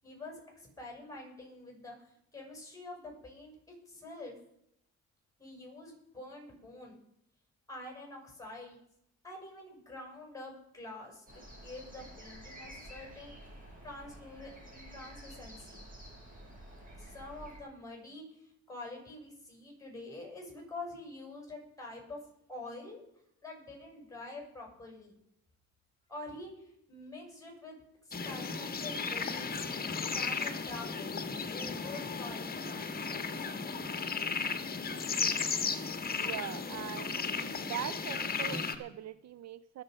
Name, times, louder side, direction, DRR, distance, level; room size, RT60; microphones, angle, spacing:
voice 1, 0.0-4.3 5.4-7.0 7.7-8.8 9.2-13.5 13.8-15.8 17.0-22.2 22.5-23.0 23.4-25.1 26.1-27.8 28.1-29.6 30.0-33.4, left 2 dB, 10° left, 0 dB, 7.7 m, -47 dB
sound 1, 11.3-17.6, right 1 dB, 25° right, 6.1 m, -50 dB
sound 2, 28.1-38.7, left 5 dB, 30° left, 1.5 m, -35 dB
voice 2, 36.2-37.2 37.6-39.8, right 11 dB, 60° right, 17 dB, 0.6 m, -41 dB
22.0 x 7.7 x 5.5 m, 0.76 s
cardioid pair, 90°, 30 cm